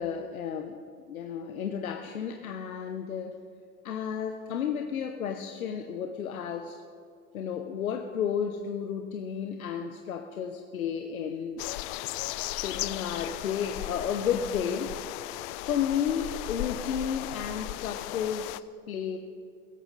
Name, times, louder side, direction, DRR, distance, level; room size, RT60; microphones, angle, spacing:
voice 1, 0.0-3.4 3.8-6.8 7.3-11.6 12.5-15.0 15.6-19.2, left 7 dB, 85° left, 5 dB, 1.0 m, -32 dB
sound 1, 11.6-18.6, left 17 dB, 40° left, 0.4 m, -36 dB
17.0 x 14.0 x 4.0 m, 2.3 s
hypercardioid pair, 105°, 42 cm